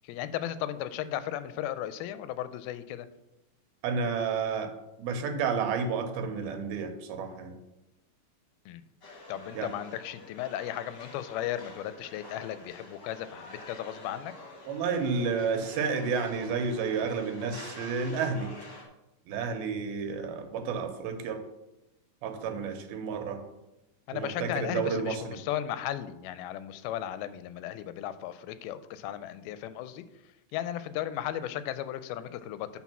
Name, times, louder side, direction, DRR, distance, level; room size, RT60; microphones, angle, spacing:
voice 1, 0.0-3.1 8.7-8.8 9.3-14.3 22.6-22.7 24.1-30.0 30.5-32.7, left 11 dB, 90° left, 13 dB, 2.4 m, -35 dB
voice 2, 3.8-4.7 5.0-7.6 9.6-9.7 14.7-18.5 19.3-21.4 22.2-23.4 24.1-25.4, right 5 dB, 85° right, 6 dB, 2.7 m, -31 dB
sound 1, 9.0-18.8, left 2 dB, 45° left, 1.4 m, -48 dB
8.3 x 4.3 x 6.0 m, 0.93 s
omnidirectional pair, 4.3 m